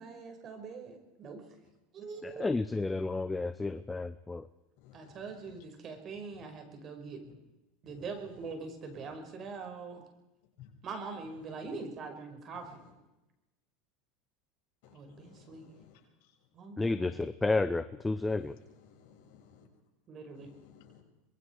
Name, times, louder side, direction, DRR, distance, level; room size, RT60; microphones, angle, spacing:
voice 1, 0.0-1.5 1.9-2.5 3.8-3.9 4.9-7.2 7.8-10.0 10.8-12.8 14.9-15.7 16.5-17.2 20.1-20.5, right 4 dB, 40° right, 5 dB, 5.5 m, -43 dB
voice 2, 2.2-4.5 16.8-18.6, left 3 dB, 10° left, 12 dB, 0.8 m, -31 dB
voice 3, 4.8-5.1 7.3-7.4 14.8-15.9 18.9-19.7 20.6-21.0, left 8 dB, 70° left, 0 dB, 7.3 m, -59 dB
25.0 x 21.5 x 4.8 m, 0.96 s
supercardioid pair, 105°, 0 cm